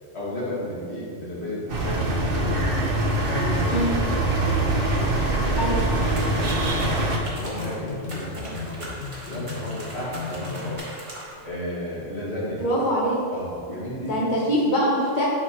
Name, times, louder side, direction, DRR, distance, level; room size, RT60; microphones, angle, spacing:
voice 1, 0.1-2.7 3.2-4.2 4.9-6.9 7.4-8.9 9.3-10.8 11.4-12.9 13.3-14.2, equal, 60° left, -8 dB, 2.2 m, -33 dB
sound 1, 1.7-7.2, right 2 dB, 50° right, 1.0 m, -23 dB
voice 2, 3.7-4.0 5.5-5.8 12.5-13.2 14.0-15.2, equal, 40° left, -5 dB, 1.0 m, -23 dB
sound 2, 5.6-10.8, left 5 dB, 75° left, 1.5 m, -36 dB
sound 3, 6.2-11.5, right 1 dB, 25° right, 1.3 m, -40 dB
10.5 x 4.9 x 3.0 m, 2.4 s
omnidirectional pair, 1.3 m